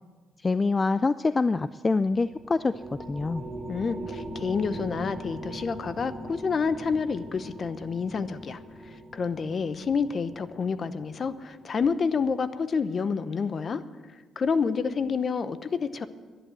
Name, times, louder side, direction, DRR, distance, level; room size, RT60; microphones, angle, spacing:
voice 1, 0.4-2.8 3.1-3.4, left 3 dB, 25° left, 14 dB, 0.3 m, -25 dB
sound 1, 2.0-11.8, right 1 dB, 5° right, 2.8 m, -41 dB
voice 2, 3.7-8.6 8.8-13.8 14.4-16.1, left 5 dB, 45° left, 13 dB, 0.8 m, -28 dB
11.0 x 11.0 x 7.8 m, 1.4 s
cardioid pair, 90°, 0 cm